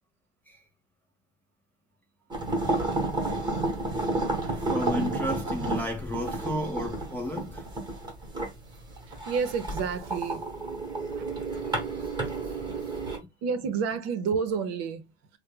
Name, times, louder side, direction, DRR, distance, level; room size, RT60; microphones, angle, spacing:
sound 1, 2.3-13.2, right 2 dB, 15° right, 1.0 m, -31 dB
voice 1, 4.4-7.6 11.1-11.3 11.6-11.8, equal, 5° left, 0.4 m, -33 dB
voice 2, 9.1-10.4 11.2-11.3 13.4-15.1, right 6 dB, 50° right, 0.8 m, -30 dB
3.2 x 2.2 x 3.3 m
supercardioid pair, 120°, 33 cm